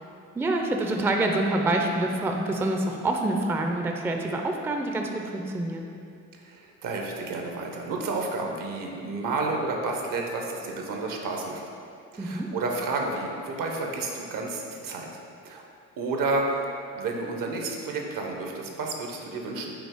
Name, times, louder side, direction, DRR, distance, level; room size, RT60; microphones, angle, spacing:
voice 1, 0.3-5.9 12.2-12.5, right 2 dB, 5° right, 2 dB, 0.4 m, -26 dB
voice 2, 6.3-11.6 12.1-15.2 15.4-15.6 16.0-16.7 16.9-19.7, right 3 dB, 65° right, 1 dB, 0.8 m, -31 dB
5.2 x 2.9 x 3.5 m, 2.4 s
supercardioid pair, 60°, 36 cm